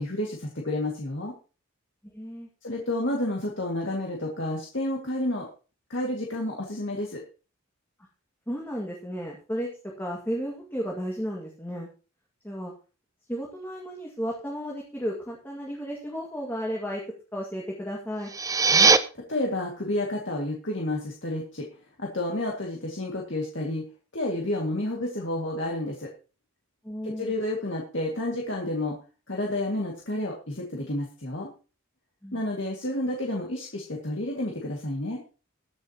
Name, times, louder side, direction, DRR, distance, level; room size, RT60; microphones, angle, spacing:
voice 1, 0.0-1.3 2.6-5.5 5.9-7.2 18.7-18.9 19.3-21.7 22.0-23.8 24.1-26.1 27.0-29.0 29.3-31.5 32.3-35.2, left 1 dB, 55° left, -1 dB, 2.1 m, -30 dB
voice 2, 2.1-2.5 8.5-9.7 10.0-11.9 12.4-12.7 13.3-17.0 17.3-18.3 26.8-27.3 32.2-32.4, equal, 10° left, -2 dB, 2.0 m, -33 dB
sound 1, 18.2-19.0, right 4 dB, 15° right, 0.5 m, -19 dB
21.5 x 7.4 x 2.9 m, 0.35 s
head